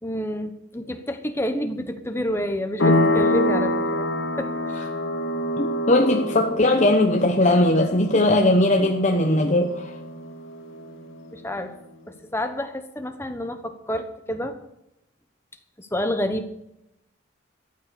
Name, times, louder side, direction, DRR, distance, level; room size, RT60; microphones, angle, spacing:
voice 1, 0.0-4.1 4.4-4.9 11.3-11.7 12.1-14.6 15.8-16.5, left 1 dB, 10° left, 7 dB, 1.2 m, -29 dB
sound 1, 2.8-11.1, left 1 dB, 75° left, 2.2 m, -26 dB
voice 2, 5.6-9.9, left 1 dB, 35° left, 3 dB, 0.9 m, -19 dB
14.0 x 9.0 x 6.8 m, 0.84 s
head